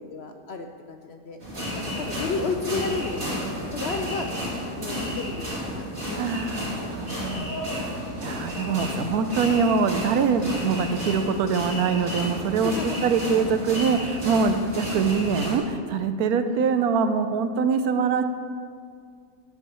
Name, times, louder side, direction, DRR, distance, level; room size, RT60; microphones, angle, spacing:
voice 1, 0.0-1.4 1.7-3.3 3.7-6.9 12.6-13.0 16.4-16.8, left 4 dB, 65° left, 5 dB, 0.7 m, -33 dB
sound 1, 1.4-15.6, equal, 45° right, 3.4 m, -32 dB
voice 2, 6.1-7.5 8.2-12.7 13.0-18.2, right 5 dB, 80° right, 9 dB, 1.1 m, -24 dB
13.0 x 10.0 x 3.1 m, 2.1 s
omnidirectional pair, 1.6 m